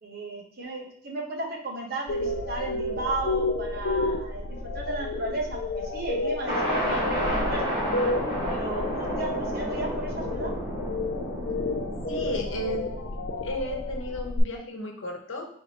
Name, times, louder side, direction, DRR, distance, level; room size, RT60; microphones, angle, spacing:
voice 1, 0.0-7.8 8.5-10.5, right 2 dB, 50° right, -1 dB, 1.0 m, -34 dB
sound 1, 2.1-14.4, left 2 dB, 70° left, 0.5 m, -31 dB
sound 2, 6.5-14.0, equal, 25° right, 1.2 m, -31 dB
voice 2, 12.1-12.8 13.2-15.5, left 1 dB, 90° left, 1 dB, 1.0 m, -33 dB
4.6 x 3.5 x 2.9 m, 0.65 s
head